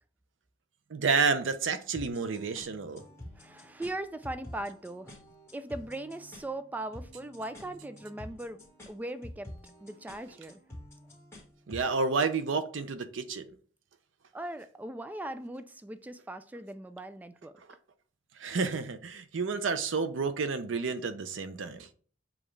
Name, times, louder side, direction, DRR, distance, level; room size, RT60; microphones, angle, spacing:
voice 1, 0.9-3.0 11.7-13.5 18.4-21.9, right 4 dB, 85° right, 0.5 m, -30 dB
sound 1, 1.9-11.9, left 1 dB, 15° left, 1.5 m, -49 dB
voice 2, 3.4-5.1 5.5-9.5 9.8-10.6 14.3-17.5, right 1 dB, 10° right, 0.3 m, -39 dB
7.0 x 2.4 x 3.2 m
head